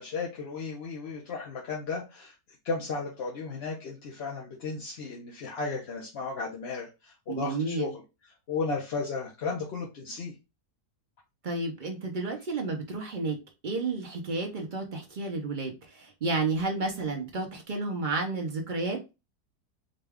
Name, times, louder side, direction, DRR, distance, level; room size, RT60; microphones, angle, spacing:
voice 1, 0.0-2.3 2.6-7.9 8.5-10.3, left 4 dB, 55° left, -2 dB, 0.8 m, -34 dB
voice 2, 7.3-7.9 11.4-13.4 13.6-19.1, right 3 dB, 50° right, 2 dB, 0.6 m, -31 dB
3.9 x 2.3 x 3.4 m, 0.27 s
omnidirectional pair, 1.8 m